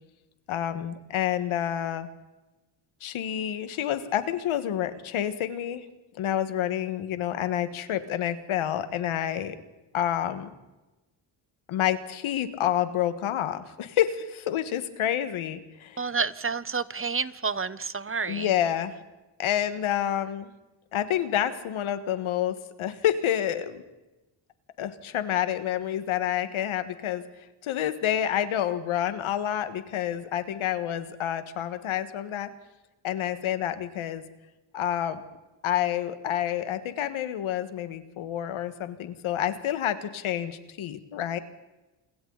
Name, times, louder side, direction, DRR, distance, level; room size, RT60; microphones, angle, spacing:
voice 1, 0.5-2.1 3.0-5.9 6.2-9.6 9.9-10.5 11.7-16.1 18.3-19.0 19.4-20.5 20.9-23.8 24.8-32.5 33.0-34.2 34.7-35.2 35.6-41.4, left 11 dB, 85° left, 11 dB, 1.8 m, -28 dB
voice 2, 16.0-18.5, right 5 dB, 25° right, 16 dB, 1.0 m, -29 dB
29.0 x 22.5 x 4.1 m, 1.1 s
cardioid pair, 75°, 48 cm